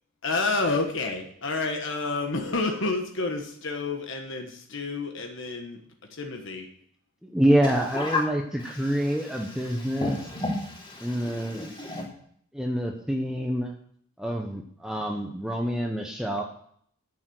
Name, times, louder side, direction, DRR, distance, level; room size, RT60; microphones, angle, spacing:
voice 1, 0.2-5.8 6.2-6.7, left 3 dB, 60° left, 3 dB, 1.3 m, -29 dB
voice 2, 7.2-10.2 11.0-11.7 12.5-13.7 14.2-16.4, equal, 5° right, 1 dB, 0.9 m, -26 dB
voice 3, 8.6-12.1, left 2 dB, 25° left, -2 dB, 3.2 m, -33 dB
10.0 x 6.9 x 7.8 m, 0.64 s
head